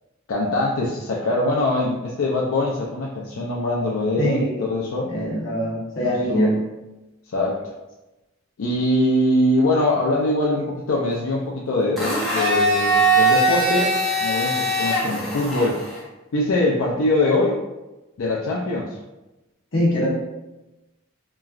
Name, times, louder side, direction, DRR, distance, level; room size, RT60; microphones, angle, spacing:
voice 1, 0.3-5.1 6.0-6.5 7.3-7.6 8.6-15.8 16.3-17.6 18.2-19.0, left 1 dB, 85° left, -4 dB, 0.4 m, -23 dB
voice 2, 4.2-4.7 5.1-6.6 19.7-20.1, equal, 65° left, -5 dB, 1.0 m, -23 dB
Domestic sounds home sounds, 12.0-16.0, right 1 dB, ahead, 0.6 m, -21 dB
3.0 x 2.4 x 2.3 m, 1.0 s
head